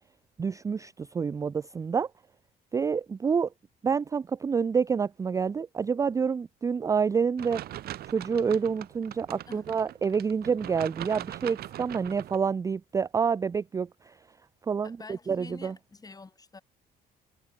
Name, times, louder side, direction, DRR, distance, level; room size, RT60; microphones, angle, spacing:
voice 1, 0.4-2.1 2.7-3.5 3.8-7.6 8.1-14.1 14.7-15.7, right 6 dB, 20° right, 0.3 m, -28 dB
sound 1, 7.4-12.4, right 13 dB, 65° right, 2.4 m, -41 dB
voice 2, 14.8-16.6, left 4 dB, 20° left, 7.6 m, -46 dB
cardioid pair, 110°, 17 cm